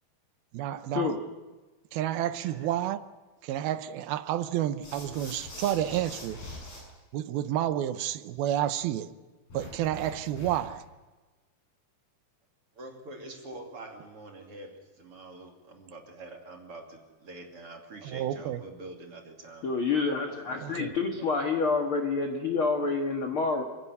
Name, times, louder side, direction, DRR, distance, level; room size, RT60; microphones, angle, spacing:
voice 1, 0.5-1.1 1.9-3.0 3.4-6.4 7.1-9.1 9.5-10.8 18.0-18.6 20.6-20.9, right 12 dB, 80° right, 2.7 m, -30 dB
sound 1, 4.8-6.8 9.5-10.8, left 2 dB, 70° left, 9.4 m, -43 dB
voice 2, 12.7-19.7 20.3-21.3, right 2 dB, 40° right, 3.2 m, -46 dB
voice 3, 19.6-23.6, left 4 dB, 45° left, 1.9 m, -28 dB
27.0 x 16.5 x 9.6 m
omnidirectional pair, 4.4 m